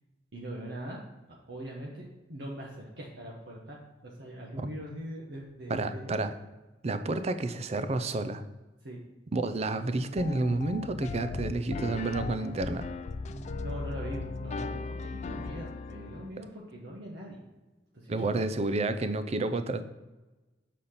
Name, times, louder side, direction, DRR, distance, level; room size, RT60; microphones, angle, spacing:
voice 1, 0.3-1.0 1.3-3.8 4.0-6.2 8.8-9.0 13.3-17.4 17.9-18.4, right 1 dB, 65° right, -2 dB, 1.1 m, -42 dB
voice 2, 5.7-6.3 6.8-8.4 9.3-12.9 18.1-19.8, right 2 dB, 35° right, 10 dB, 0.5 m, -30 dB
sound 1, 10.2-16.3, left 3 dB, 40° left, 0.3 m, -37 dB
6.6 x 4.2 x 5.5 m, 1.1 s
head